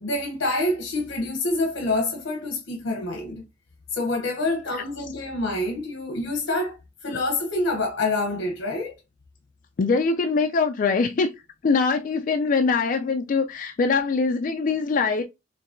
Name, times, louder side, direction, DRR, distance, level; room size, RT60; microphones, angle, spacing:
voice 1, 0.0-3.4 3.9-8.9, left 2 dB, 85° left, 0.8 m, -27 dB
voice 2, 9.8-11.3 11.6-15.2, left 4 dB, 45° left, 0.3 m, -23 dB
4.5 x 3.0 x 2.5 m
head